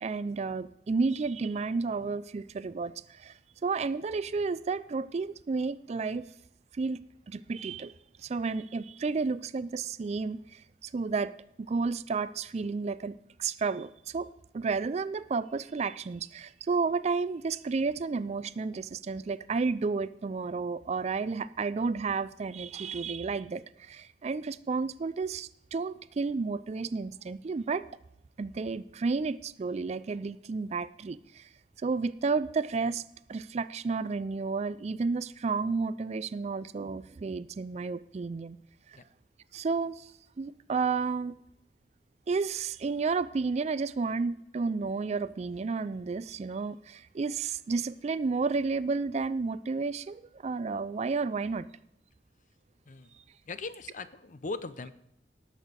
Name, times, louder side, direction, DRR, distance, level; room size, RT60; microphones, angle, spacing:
voice 1, 0.0-6.2 6.7-7.9 8.2-27.8 28.4-31.5 31.8-33.0 33.3-38.6 38.9-39.0 39.5-40.1 40.4-41.3 42.3-51.7, right 4 dB, 35° right, 0.4 m, -32 dB
voice 2, 52.9-53.2 53.4-54.9, left 3 dB, 45° left, 0.6 m, -39 dB
18.5 x 6.4 x 5.1 m
head